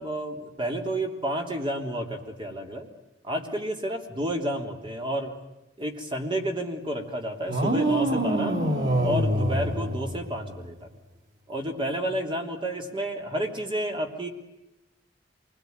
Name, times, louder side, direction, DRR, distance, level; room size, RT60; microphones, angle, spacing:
voice 1, 0.0-2.9 3.2-5.4 5.8-8.6 9.0-10.9 11.5-14.3, right 1 dB, 30° right, 3 dB, 3.3 m, -30 dB
sound 1, 7.5-10.6, right 1 dB, 90° right, 2.9 m, -25 dB
27.5 x 21.5 x 9.5 m, 0.92 s
head